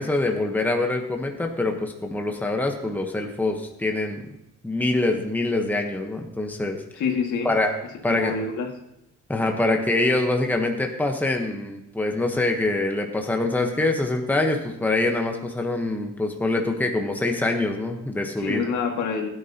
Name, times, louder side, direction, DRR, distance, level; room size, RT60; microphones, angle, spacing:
voice 1, 0.0-4.2 4.6-6.8 7.4-7.7 8.0-8.3 9.3-18.7, left 2 dB, 5° left, 2 dB, 1.1 m, -24 dB
voice 2, 7.0-7.5 8.1-8.7 18.4-19.3, left 5 dB, 75° left, 1 dB, 2.1 m, -26 dB
16.5 x 10.0 x 2.9 m, 0.83 s
cardioid pair, 130°, 29 cm